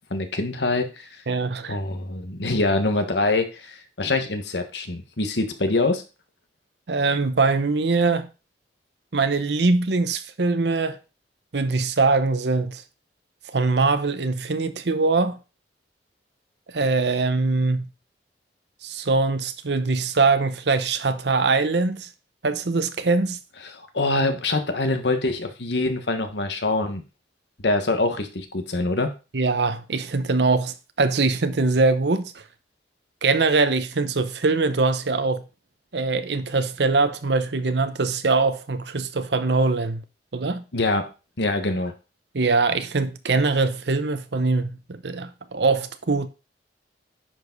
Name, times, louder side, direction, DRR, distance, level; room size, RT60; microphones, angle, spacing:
voice 1, 0.1-1.1 1.7-6.0 23.7-27.0 27.6-29.1 40.7-41.1 41.4-41.9, left 2 dB, 75° left, 1.4 m, -24 dB
voice 2, 1.3-1.8 6.9-8.3 9.1-11.0 11.5-12.8 13.5-15.4 16.7-17.9 18.8-22.1 22.4-23.4 29.3-32.4 33.2-35.4 35.9-40.0 40.3-40.6 42.3-46.3, right 3 dB, 70° right, 0.8 m, -22 dB
10.0 x 5.0 x 4.0 m
head